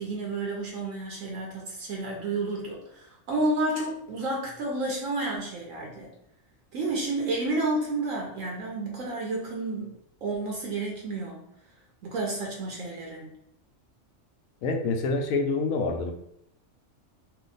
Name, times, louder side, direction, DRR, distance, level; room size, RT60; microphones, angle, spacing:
voice 1, 0.0-6.1 6.7-9.9 10.2-11.5 12.0-13.3, right 2 dB, 75° right, -2 dB, 1.0 m, -31 dB
voice 2, 14.6-16.1, left 3 dB, 85° left, 4 dB, 1.0 m, -26 dB
2.8 x 2.5 x 3.8 m, 0.76 s
omnidirectional pair, 1.4 m